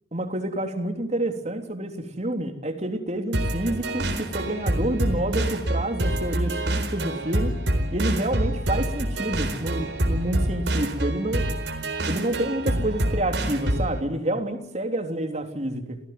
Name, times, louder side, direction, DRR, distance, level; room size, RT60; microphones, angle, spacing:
voice 1, 0.1-7.5 7.9-11.4 12.0-16.0, right 1 dB, 40° right, 6 dB, 3.4 m, -28 dB
sound 1, 3.3-14.0, right 1 dB, 85° right, 4.3 m, -26 dB
29.0 x 18.0 x 9.5 m, 0.78 s
head